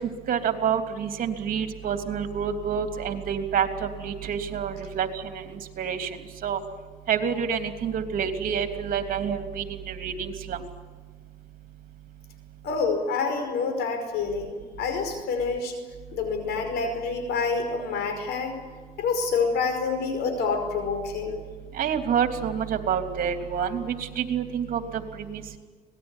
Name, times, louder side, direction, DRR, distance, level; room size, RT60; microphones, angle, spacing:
voice 1, 0.3-6.1 6.4-6.6 7.1-10.6 21.8-24.8 25.3-25.4, right 7 dB, 55° right, 6 dB, 3.1 m, -28 dB
voice 2, 12.6-15.8 16.1-18.6 19.0-21.4, left 4 dB, 80° left, 6 dB, 5.3 m, -27 dB
25.5 x 19.5 x 9.9 m, 1.4 s
cardioid pair, 110°, 17 cm